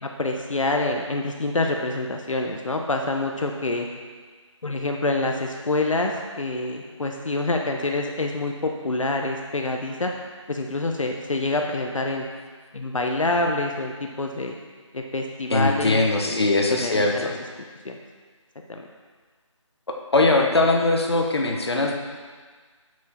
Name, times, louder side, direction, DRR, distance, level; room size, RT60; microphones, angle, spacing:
voice 1, 0.0-3.9 4.6-10.1 10.5-12.3 12.7-13.9 14.2-14.5 14.9-17.3 17.8-18.0 18.7-18.9, left 2 dB, 80° left, 2 dB, 0.8 m, -26 dB
voice 2, 15.5-17.3 20.1-21.9, left 2 dB, 55° left, 1 dB, 1.0 m, -21 dB
6.8 x 6.3 x 4.3 m, 1.5 s
figure-of-eight pair, 175°, 17 cm